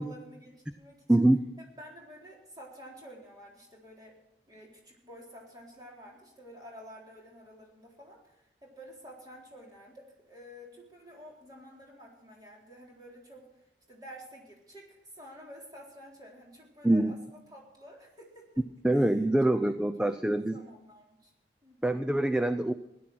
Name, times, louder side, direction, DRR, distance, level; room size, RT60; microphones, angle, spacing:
voice 1, 0.0-1.0 1.8-4.2 4.5-13.5 13.9-18.5 18.9-19.2 19.4-19.7 20.0-21.3 21.6-21.9, equal, 20° right, -3 dB, 4.0 m, -50 dB
voice 2, 18.8-20.6 21.8-22.7, right 1 dB, 5° right, 10 dB, 0.4 m, -24 dB
17.0 x 11.0 x 6.2 m, 0.89 s
head